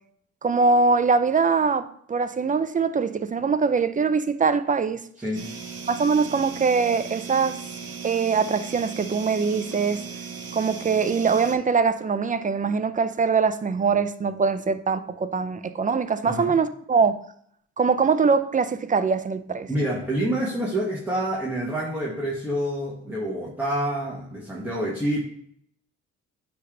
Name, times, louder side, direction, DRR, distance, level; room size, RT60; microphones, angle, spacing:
voice 1, 0.4-5.0 5.9-7.6 8.0-10.0 10.5-17.2 17.8-19.7, right 5 dB, 25° right, 12 dB, 0.5 m, -22 dB
sound 1, 5.3-11.6, right 5 dB, 55° right, 1.0 m, -37 dB
voice 2, 16.2-16.6 19.7-25.2, right 1 dB, 5° right, -5 dB, 1.5 m, -27 dB
9.5 x 3.4 x 3.8 m, 0.68 s
cardioid pair, 90°, 30 cm